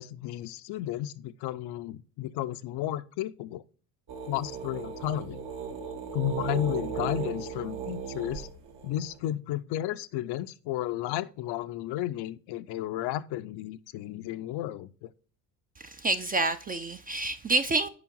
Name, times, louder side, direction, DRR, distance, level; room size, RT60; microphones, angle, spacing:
voice 1, 0.0-3.6 4.3-5.4 6.1-8.5 8.8-15.1, left 13 dB, 55° left, 0.5 m, -33 dB
sound 1, 4.1-9.2, right 6 dB, 65° right, 1.6 m, -36 dB
voice 2, 15.8-17.9, right 2 dB, 20° right, 0.4 m, -28 dB
4.9 x 4.9 x 5.2 m
hypercardioid pair, 65°, 49 cm